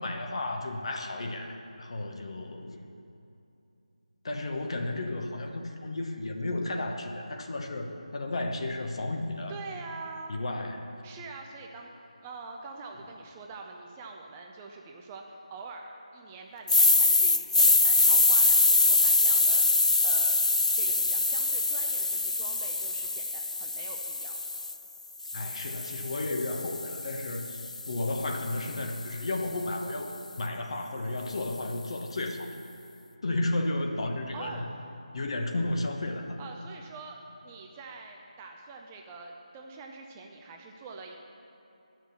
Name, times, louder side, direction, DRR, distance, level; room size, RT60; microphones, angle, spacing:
voice 1, 0.0-2.9 4.2-9.5 10.3-11.0 25.3-32.5 33.2-34.6 35.1-36.4, left 2 dB, 50° left, 4 dB, 1.0 m, -33 dB
voice 2, 9.5-10.4 11.0-11.9 12.2-20.4 20.7-24.4 34.3-34.6 36.4-41.2, right 4 dB, 15° right, 1 dB, 0.5 m, -44 dB
sound 1, 16.7-24.7 25.2-29.4, left 3 dB, 75° left, 0.4 m, -25 dB
10.0 x 6.3 x 6.9 m, 2.7 s
figure-of-eight pair, 160°, 4 cm